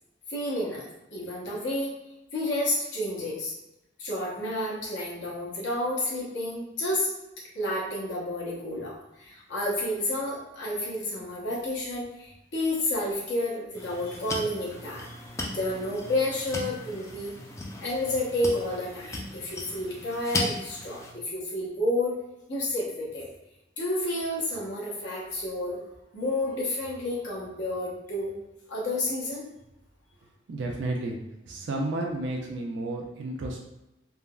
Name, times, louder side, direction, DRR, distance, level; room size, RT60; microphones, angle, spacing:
voice 1, 0.3-1.9 2.3-3.5 4.0-7.1 7.5-15.2 15.5-17.3 17.8-22.2 22.5-23.3 23.8-25.8 26.1-28.3 28.7-29.4, left 1 dB, 90° left, -6 dB, 1.0 m, -30 dB
sound 1, 13.7-21.1, left 2 dB, 15° left, 0.3 m, -37 dB
voice 2, 30.5-31.2 31.5-33.6, right 2 dB, 85° right, 0 dB, 0.4 m, -31 dB
3.4 x 2.0 x 2.3 m, 0.95 s
head